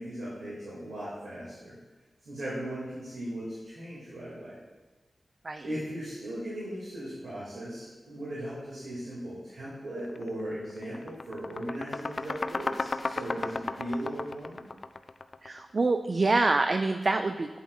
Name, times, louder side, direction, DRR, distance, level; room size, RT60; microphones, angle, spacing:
voice 1, 0.0-1.7 2.2-4.6 5.6-14.6, right 1 dB, 85° right, -9 dB, 2.1 m, -38 dB
sound 1, 10.1-10.3 10.6-15.6, left 3 dB, 55° left, 0.3 m, -34 dB
voice 2, 15.4-17.6, right 3 dB, 50° right, 7 dB, 0.3 m, -26 dB
8.2 x 7.2 x 2.4 m, 1.2 s
cardioid pair, 50°, 0 cm